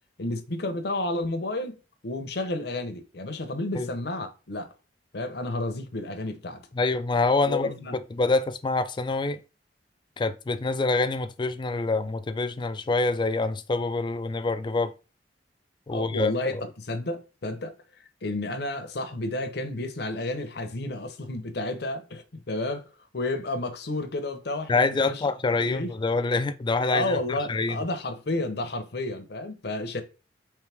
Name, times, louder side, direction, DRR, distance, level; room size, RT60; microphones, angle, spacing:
voice 1, 0.2-4.7 5.1-6.6 7.4-8.0 15.9-17.7 18.2-22.9 23.1-25.2 25.6-25.9 26.9-30.0, left 2 dB, 65° left, 0.8 m, -31 dB
voice 2, 6.7-7.8 8.1-9.4 10.2-14.9 15.9-16.6 24.7-27.8, left 3 dB, 25° left, 0.4 m, -26 dB
4.6 x 3.2 x 3.4 m
head